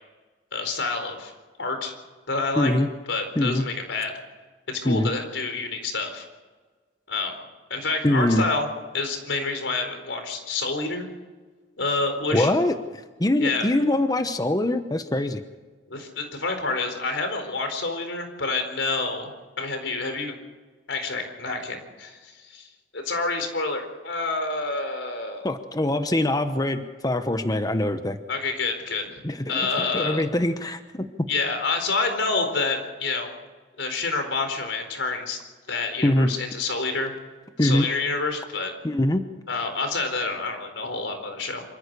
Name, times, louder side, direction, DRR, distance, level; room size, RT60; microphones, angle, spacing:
voice 1, 0.5-1.3 1.6-1.9 2.3-2.7 3.1-4.1 4.7-6.3 7.1-7.3 7.7-8.7 8.9-11.1 11.8-12.5 13.4-13.7 15.9-19.3 19.6-20.4 20.9-22.7 22.9-25.5 28.3-29.1 29.5-30.2 31.3-33.3 33.8-35.4 35.7-37.1 37.6-38.7 39.5-41.6, left 3 dB, 80° left, 6 dB, 4.4 m, -28 dB
voice 2, 2.6-2.9 3.4-3.7 4.8-5.1 8.0-8.4 12.3-15.4 25.4-28.2 29.2-31.1 36.0-36.3 37.6-37.9 38.8-39.2, left 1 dB, 20° left, 8 dB, 1.0 m, -23 dB
26.5 x 15.0 x 6.9 m, 1.3 s
head